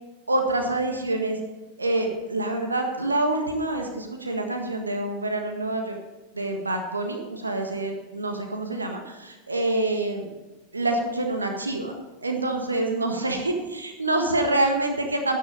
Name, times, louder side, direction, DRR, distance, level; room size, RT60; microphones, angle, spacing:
voice 1, 0.3-1.4 1.8-6.0 6.3-10.3 10.7-11.9 12.2-15.4, right 2 dB, 80° right, 4 dB, 1.6 m, -26 dB
12.5 x 10.0 x 5.3 m, 1.1 s
figure-of-eight pair, 90°, 0 cm